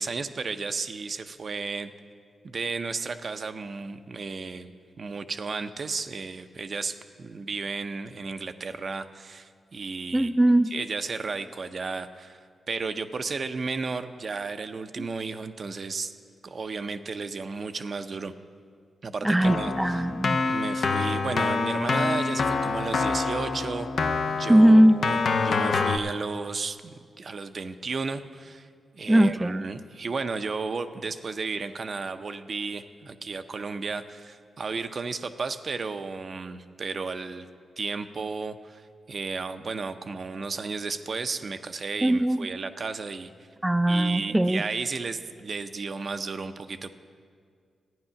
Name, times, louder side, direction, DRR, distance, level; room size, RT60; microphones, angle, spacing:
voice 1, 0.0-1.9 2.4-4.7 5.0-10.3 10.7-16.1 16.4-18.3 19.0-20.1 20.5-24.1 24.4-28.7 28.9-37.5 37.8-43.3 43.9-46.9, right 4 dB, 55° right, 9 dB, 0.6 m, -33 dB
voice 2, 10.1-10.7 15.0-15.1 19.2-20.4 24.5-25.0 29.1-29.6 42.0-42.5 43.6-44.6, right 1 dB, 10° right, 9 dB, 0.4 m, -20 dB
Keyboard (musical), 19.4-26.0, left 4 dB, 70° left, 0.7 m, -26 dB
12.5 x 9.4 x 5.7 m, 2.1 s
supercardioid pair, 45°, 0 cm